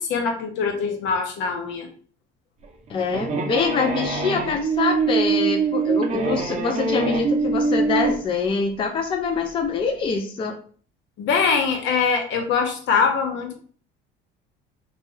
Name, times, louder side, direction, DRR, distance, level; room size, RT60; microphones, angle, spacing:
voice 1, 0.0-1.9 11.2-13.5, left 5 dB, 65° left, 4 dB, 0.8 m, -23 dB
sound 1, 2.6-8.2, right 4 dB, 35° right, 0.6 m, -23 dB
voice 2, 2.9-10.6, left 5 dB, 25° left, 4 dB, 0.4 m, -25 dB
2.6 x 2.3 x 3.1 m, 0.44 s
cardioid pair, 115°, 21 cm